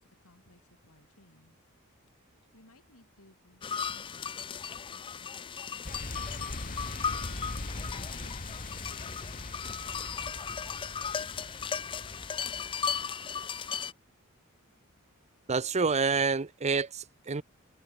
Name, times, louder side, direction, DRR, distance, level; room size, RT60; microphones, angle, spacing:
voice 1, 0.0-1.5 2.5-6.8 7.2-10.4, left 1 dB, 70° left, 6.6 m, -60 dB
sound 1, 3.6-13.9, left 7 dB, 25° left, 0.3 m, -36 dB
sound 2, 5.8-13.5, left 2 dB, 40° left, 2.1 m, -41 dB
voice 2, 15.5-17.4, right 4 dB, 30° right, 0.7 m, -28 dB
head